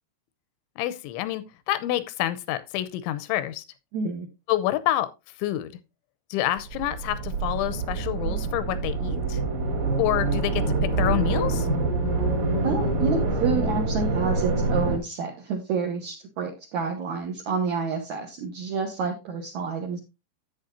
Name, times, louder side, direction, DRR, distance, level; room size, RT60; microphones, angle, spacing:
voice 1, 0.8-3.6 4.5-5.1 5.4-5.7 6.3-9.4 10.0-11.7, left 14 dB, 90° left, 3.1 m, -28 dB
voice 2, 3.9-4.3 12.6-20.0, right 5 dB, 75° right, 1.7 m, -29 dB
sound 1, 6.6-15.0, right 3 dB, 45° right, 2.9 m, -26 dB
10.5 x 8.6 x 2.7 m
omnidirectional pair, 5.3 m